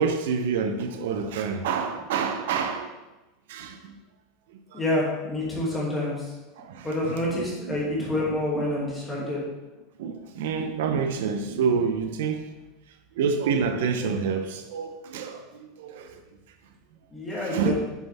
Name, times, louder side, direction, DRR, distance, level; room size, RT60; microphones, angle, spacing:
voice 1, 0.0-2.9 3.5-3.8 4.7-4.8 5.7-5.8 6.6-8.1 8.5-8.7 9.2-9.3 10.0-12.4 13.2-15.4 15.8-16.1 17.4-17.7, right 6 dB, 80° right, 0.8 m, -28 dB
voice 2, 4.7-6.3 6.8-9.4 17.1-17.7, left 1 dB, 10° left, 2.5 m, -28 dB
8.4 x 7.2 x 3.6 m
supercardioid pair, 165°, 0 cm